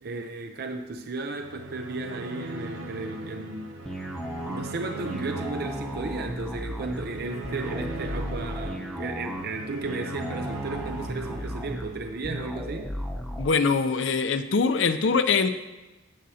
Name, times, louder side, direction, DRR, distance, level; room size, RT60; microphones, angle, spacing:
voice 1, 0.0-3.7 4.5-12.9, right 3 dB, 55° right, 5 dB, 0.6 m, -34 dB
sound 1, 1.3-12.6, right 2 dB, 90° right, 1.1 m, -39 dB
sound 2, 3.9-13.5, equal, ahead, 0.9 m, -35 dB
voice 2, 13.4-15.5, left 4 dB, 70° left, 9 dB, 0.6 m, -23 dB
15.0 x 7.5 x 2.8 m, 1.1 s
head